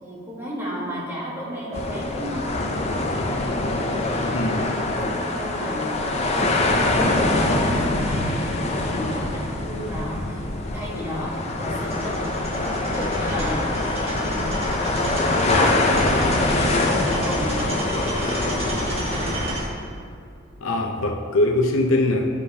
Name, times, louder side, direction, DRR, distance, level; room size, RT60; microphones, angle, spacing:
voice 1, 0.0-2.6 4.0-6.4 6.9-10.4 10.7-14.8 16.2-19.3, equal, 10° right, -6 dB, 1.3 m, -33 dB
sound 1, 1.7-19.7, left 2 dB, 30° left, 0.5 m, -24 dB
voice 2, 4.3-4.7 20.6-22.3, left 2 dB, 85° left, 3 dB, 0.6 m, -22 dB
sound 2, 11.8-19.6, right 1 dB, 30° right, 1.2 m, -32 dB
9.5 x 5.0 x 2.8 m, 2.4 s
head